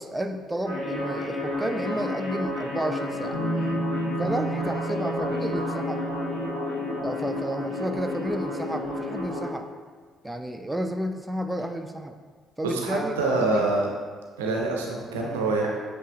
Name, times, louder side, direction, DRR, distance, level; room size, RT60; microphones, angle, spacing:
voice 1, 0.0-3.7 4.2-6.0 7.0-9.7 10.2-12.2 12.6-13.7, right 1 dB, 10° right, 5 dB, 0.3 m, -31 dB
sound 1, 0.6-9.5, left 2 dB, 65° left, 1.5 m, -31 dB
sound 2, 3.3-7.1, right 2 dB, 85° left, 0.6 m, -31 dB
voice 2, 12.6-13.8 14.4-15.8, right 2 dB, 75° right, 0 dB, 0.5 m, -25 dB
7.8 x 2.6 x 2.2 m, 1.5 s
figure-of-eight pair, 45°, 0 cm